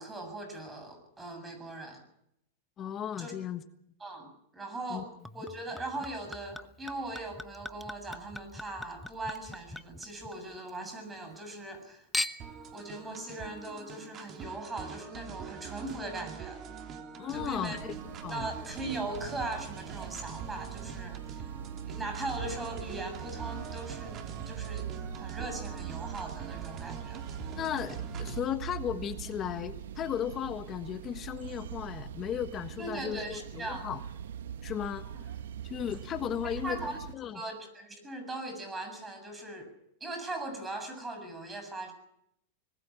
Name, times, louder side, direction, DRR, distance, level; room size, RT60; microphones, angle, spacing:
voice 1, 0.0-2.0 3.2-3.3 4.0-12.1 12.7-16.6 17.3-17.8 18.3-21.5 21.9-27.2 32.8-34.0 36.6-37.0 37.3-39.7 40.0-41.9, right 2 dB, 10° right, 6 dB, 7.4 m, -40 dB
voice 2, 2.8-3.6 4.9-5.0 17.2-17.9 18.2-18.5 27.5-34.0 34.6-35.1 35.6-37.4, left 9 dB, 30° left, 9 dB, 1.4 m, -35 dB
Chink clink / Liquid, 5.3-10.8 11.1-11.8 12.1-12.7 13.4-13.5, left 1 dB, 5° left, 1.1 m, -40 dB
sound 1, 12.4-28.4, right 6 dB, 35° right, 3.2 m, -44 dB
sound 2, 17.3-37.1, right 9 dB, 80° right, 1.2 m, -42 dB
25.5 x 20.5 x 5.9 m, 0.77 s
hypercardioid pair, 130°, 0 cm